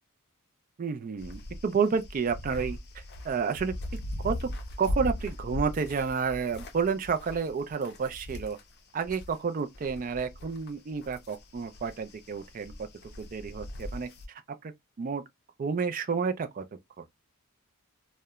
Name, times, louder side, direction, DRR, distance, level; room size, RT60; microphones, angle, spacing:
voice 1, 0.8-3.7 4.2-4.5 4.8-8.6 8.9-12.9 13.2-14.7 15.0-15.2 15.6-16.6 17.0-17.1, right 5 dB, 40° right, 0.3 m, -30 dB
sound 1, 1.2-9.4 9.7-14.3, left 1 dB, 50° left, 0.5 m, -39 dB
2.8 x 2.1 x 2.2 m
head